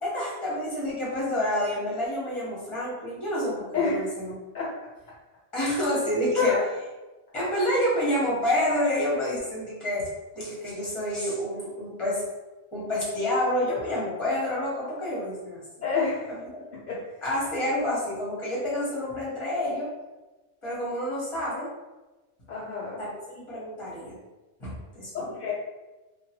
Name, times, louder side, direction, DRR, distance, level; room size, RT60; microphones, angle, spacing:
voice 1, 0.0-4.3 5.5-6.5 7.3-10.1 10.3-12.2 12.7-15.6 17.2-19.9 20.6-21.7 23.0-24.1 24.6-25.3, left 1 dB, 30° left, -7 dB, 1.0 m, -28 dB
voice 2, 15.8-16.3 16.9-17.1 22.5-23.0 25.1-25.5, left 4 dB, 60° left, -6 dB, 0.5 m, -27 dB
2.9 x 2.2 x 2.8 m, 1.1 s
omnidirectional pair, 1.2 m